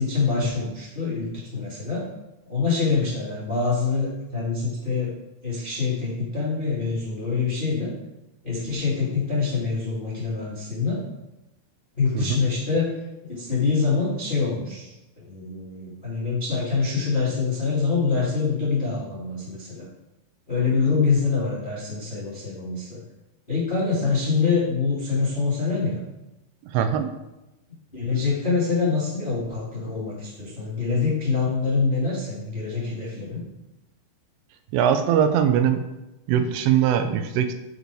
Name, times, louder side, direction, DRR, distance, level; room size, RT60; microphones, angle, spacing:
voice 1, 0.0-2.1 2.5-5.1 5.4-7.9 8.4-11.0 12.0-12.8 13.2-19.8 20.5-23.0 23.5-26.0 27.9-33.4, left 4 dB, 40° left, -7 dB, 0.7 m, -25 dB
voice 2, 26.7-27.1 34.7-35.8 36.3-37.5, right 9 dB, 85° right, 8 dB, 3.2 m, -21 dB
10.5 x 5.5 x 4.8 m, 0.98 s
omnidirectional pair, 5.6 m